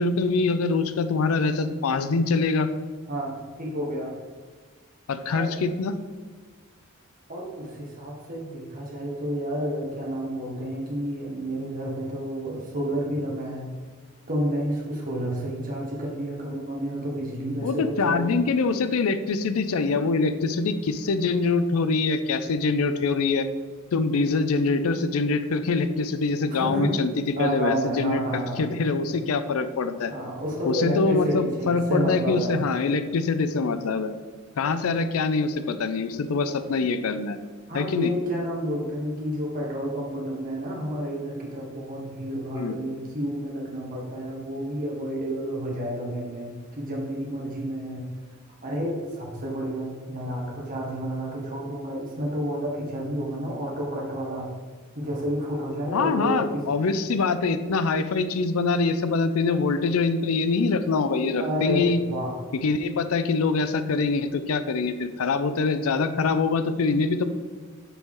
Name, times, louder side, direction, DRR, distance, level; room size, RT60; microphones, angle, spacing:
voice 1, 0.0-2.7 5.1-5.9 17.6-23.5 23.9-28.2 28.6-30.1 30.7-34.1 34.6-37.4 37.7-38.1 42.5-42.8 55.9-62.0 62.5-67.2, left 4 dB, 85° left, 11 dB, 0.4 m, -24 dB
voice 2, 3.1-4.1 5.3-5.5 7.3-13.7 14.3-18.3 26.5-27.0 27.4-28.7 30.1-32.5 37.7-48.0 48.6-54.5 54.9-56.6 61.4-62.3, equal, 40° right, -3 dB, 1.5 m, -30 dB
6.9 x 4.4 x 3.7 m, 1.5 s
head